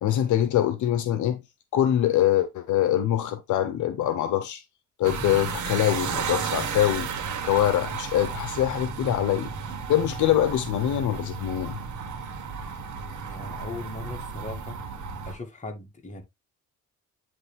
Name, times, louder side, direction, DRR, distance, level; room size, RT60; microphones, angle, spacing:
voice 1, 0.0-1.4 1.7-4.6 5.0-7.1 7.4-9.5 9.9-11.8, left 11 dB, 75° left, 0.9 m, -24 dB
sound 1, 5.0-15.4, right 6 dB, 70° right, 1.5 m, -33 dB
voice 2, 13.0-14.8 15.2-16.2, left 2 dB, 25° left, 2.0 m, -39 dB
9.1 x 3.4 x 3.4 m
cardioid pair, 90°, 30 cm